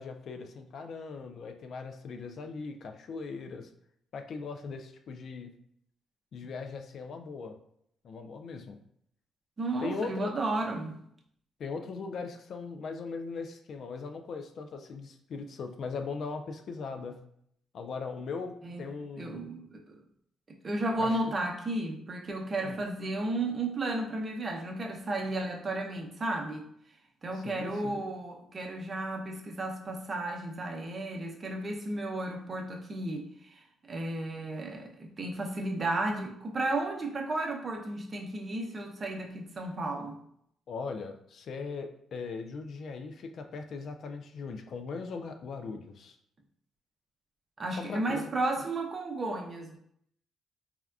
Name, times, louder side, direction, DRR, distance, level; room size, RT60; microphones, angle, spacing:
voice 1, 0.0-3.7 4.1-5.5 6.3-7.6 8.0-8.8 9.8-10.3 11.6-17.2 17.7-19.5 21.0-21.2 22.6-22.8 27.3-28.0 40.7-46.2 47.7-48.3, left 4 dB, 60° left, 6 dB, 0.3 m, -39 dB
voice 2, 9.6-11.0 18.6-18.9 19.2-20.0 20.6-26.7 27.2-40.2 47.6-49.8, right 2 dB, 35° right, 1 dB, 0.6 m, -33 dB
3.4 x 2.2 x 2.3 m, 0.70 s
cardioid pair, 90°, 0 cm